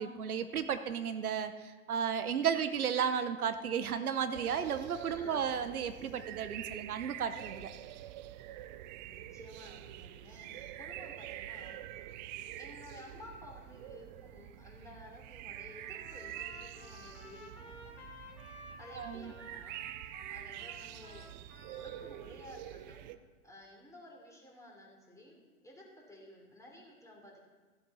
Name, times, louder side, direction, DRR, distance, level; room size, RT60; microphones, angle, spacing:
voice 1, 0.0-7.7 18.9-19.3, right 7 dB, 75° right, 10 dB, 0.9 m, -34 dB
sound 1, 4.3-23.2, right 13 dB, 30° right, 0.5 m, -46 dB
voice 2, 5.1-5.4 9.0-11.9 12.2-18.0 18.8-21.3 21.7-23.1 23.4-27.4, left 1 dB, 5° left, -1 dB, 3.3 m, -54 dB
Trumpet, 15.5-22.3, left 1 dB, 90° left, 3.5 m, -53 dB
15.0 x 7.8 x 5.6 m, 1.3 s
hypercardioid pair, 110°, 44 cm